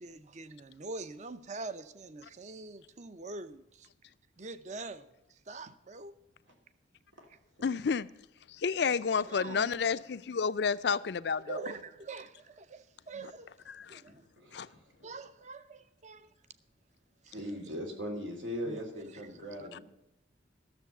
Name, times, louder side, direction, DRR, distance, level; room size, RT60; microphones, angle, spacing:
voice 1, 0.0-3.9 4.4-5.1 5.5-6.1 9.3-9.8 11.5-13.5 13.9-14.2 15.0-16.3 17.3-17.4 18.7-18.8 19.2-19.6, right 3 dB, 40° right, 0.6 m, -44 dB
voice 2, 7.6-8.1 8.5-11.6 13.2-13.3 13.7-14.0 14.5-14.7 19.7-19.8, left 5 dB, 60° left, 0.4 m, -30 dB
voice 3, 14.1-14.8 17.3-19.8, equal, 90° right, 3.0 m, -39 dB
12.5 x 7.1 x 6.6 m
head